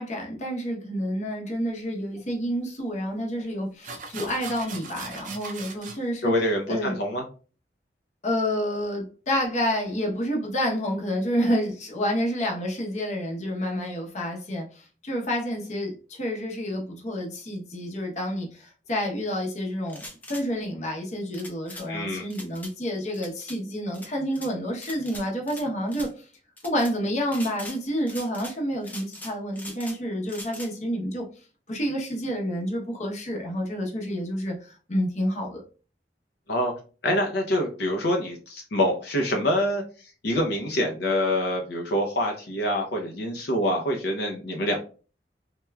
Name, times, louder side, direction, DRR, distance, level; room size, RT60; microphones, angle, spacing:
voice 1, 0.0-6.3 6.7-7.0 8.2-26.3 26.6-31.3 31.7-35.6, equal, 40° left, 0 dB, 0.8 m, -29 dB
sound 1, 2.2-2.3 3.4-3.5 3.8-6.0, right 4 dB, 45° right, 0.5 m, -39 dB
voice 2, 6.2-7.2 21.9-22.2 36.5-36.7 37.0-44.8, left 1 dB, 70° left, 1 dB, 0.6 m, -26 dB
sound 2, 19.9-20.4 21.3-21.9 22.3-22.7 23.1-23.6 23.9-24.5 24.8-25.6 25.9-26.1 26.6-26.9 27.3-27.8 28.1-28.6 28.8-30.0 30.3-30.7, left 1 dB, 10° left, 0.4 m, -41 dB
3.3 x 2.9 x 2.2 m, 0.37 s
head